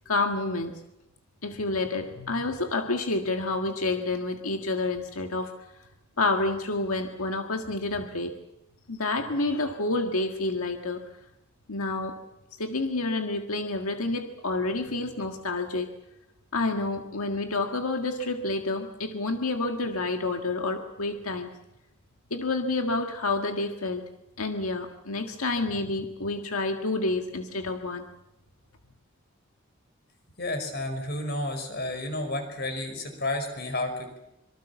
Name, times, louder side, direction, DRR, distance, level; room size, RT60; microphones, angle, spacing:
voice 1, 0.1-0.7 1.4-5.5 6.2-8.3 8.9-11.0 11.7-12.2 12.6-15.9 16.5-21.5 22.3-24.0 24.4-28.1, left 2 dB, 90° left, 4 dB, 1.8 m, -29 dB
voice 2, 30.4-34.2, left 1 dB, 45° left, 7 dB, 5.3 m, -31 dB
26.0 x 24.0 x 7.1 m, 0.89 s
head